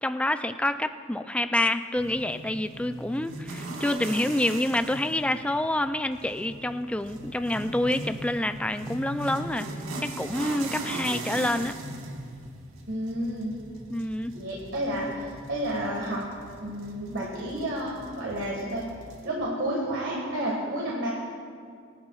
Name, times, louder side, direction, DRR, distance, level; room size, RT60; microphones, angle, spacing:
voice 1, 0.0-9.7 10.0-11.7 13.9-14.3, left 1 dB, 5° left, 9 dB, 0.3 m, -27 dB
sound 1, 2.0-19.3, right 2 dB, 85° right, 1.4 m, -39 dB
voice 2, 12.9-13.6 14.3-16.2 16.6-18.8 19.2-21.1, right 1 dB, 65° right, -4 dB, 1.7 m, -30 dB
23.0 x 11.0 x 2.4 m, 2.3 s
head